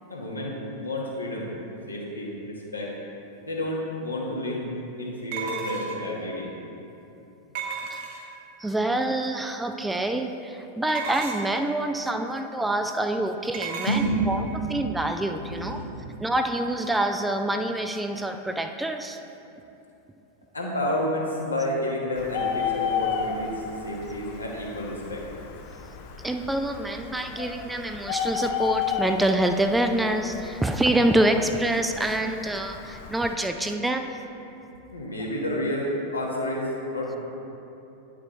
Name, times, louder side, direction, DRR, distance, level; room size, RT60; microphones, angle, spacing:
voice 1, 0.1-1.5 1.9-3.0 3.4-4.7 5.0-6.5 13.9-14.7 15.4-16.1 20.5-25.2 34.9-37.2, equal, 80° left, -3 dB, 1.3 m, -30 dB
sound 1, 3.7-3.8 5.3-6.2 7.6-8.5 10.9-11.6 13.5-14.1, right 6 dB, 50° right, 0.8 m, -33 dB
voice 2, 8.6-14.4 14.7-15.8 16.2-19.2 26.2-34.2, right 1 dB, 5° right, 5 dB, 0.4 m, -26 dB
Bird, 22.2-33.3, left 7 dB, 45° left, 0.5 m, -33 dB
9.6 x 5.9 x 3.1 m, 2.9 s
figure-of-eight pair, 90°, 0 cm